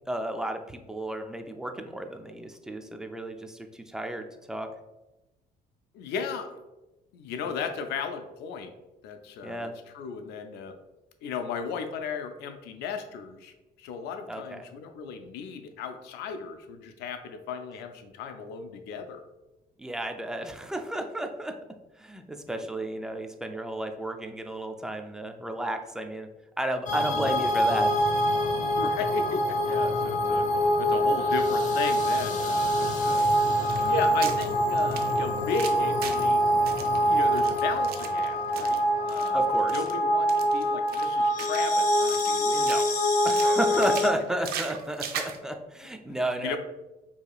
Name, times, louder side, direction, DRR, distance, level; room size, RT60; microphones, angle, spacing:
voice 1, 0.1-4.7 9.4-9.7 14.3-14.6 19.8-21.6 22.0-26.3 26.6-27.9 39.3-39.8 42.5-42.8 43.2-46.6, right 1 dB, 5° right, 5 dB, 0.3 m, -32 dB
voice 2, 5.9-6.6 7.1-8.7 9.0-10.8 11.2-19.2 22.5-22.6 27.1-27.4 28.8-30.5 30.8-33.2 33.9-36.4 37.1-39.5 39.7-42.8 43.7-43.8 46.4-46.6, left 5 dB, 85° left, 8 dB, 0.5 m, -35 dB
sound 1, 26.9-44.1, equal, 45° left, 0.7 m, -25 dB
sound 2, 33.2-36.3 36.7-38.8 39.1-39.3 39.6-39.9 40.3-41.8 42.1-43.0 43.2-45.4, right 7 dB, 65° right, 0.5 m, -39 dB
4.7 x 2.8 x 2.3 m, 1.0 s
cardioid pair, 110°, 17 cm